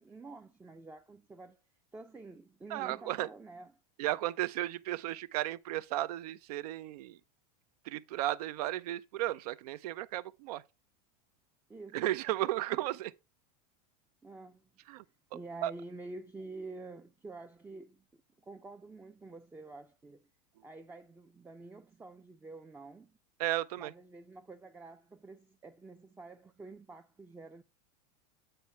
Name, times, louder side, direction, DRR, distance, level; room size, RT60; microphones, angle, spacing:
voice 1, 0.0-1.6 1.9-3.7 11.7-12.2 14.2-14.7 15.3-18.1 18.4-20.2 20.6-23.2 23.8-27.6, right 3 dB, 10° right, 0.4 m, -48 dB
voice 2, 2.7-3.3 4.0-7.2 7.8-10.6 11.9-13.1 14.9-15.0 15.6-15.7 23.4-23.9, right 15 dB, 75° right, 0.6 m, -34 dB
8.9 x 3.1 x 5.6 m
supercardioid pair, 135°, 20 cm